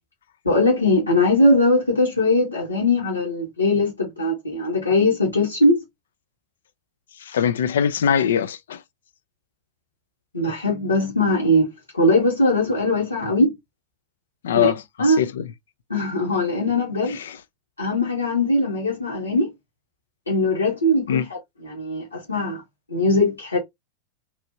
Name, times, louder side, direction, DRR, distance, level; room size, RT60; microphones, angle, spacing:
voice 1, 0.4-5.8 10.3-13.5 14.5-14.7 15.0-15.2 15.9-17.2 17.8-19.5 20.3-22.6 22.9-23.6, left 1 dB, 80° left, 1.1 m, -20 dB
voice 2, 7.2-8.8 14.4-15.4 17.1-17.4 21.1-21.3, left 8 dB, 60° left, 0.4 m, -22 dB
3.0 x 2.5 x 2.7 m
figure-of-eight pair, 90°, 0 cm